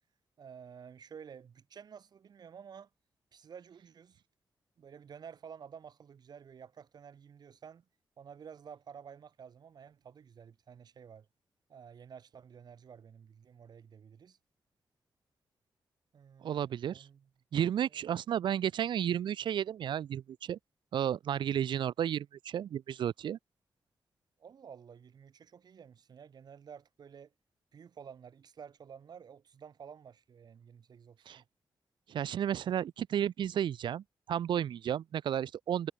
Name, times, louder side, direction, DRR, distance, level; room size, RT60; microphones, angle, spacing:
voice 1, 0.4-2.9 3.3-4.2 4.8-7.9 8.2-11.3 11.7-14.4 16.1-17.3 17.8-18.1 24.4-27.3 27.7-31.5, right 7 dB, 60° right, 3.1 m, -52 dB
voice 2, 16.4-17.1 17.5-20.6 20.9-23.4 31.3-31.4 32.1-35.9, right 10 dB, 85° right, 0.6 m, -32 dB
wide cardioid pair, 140°, 8 cm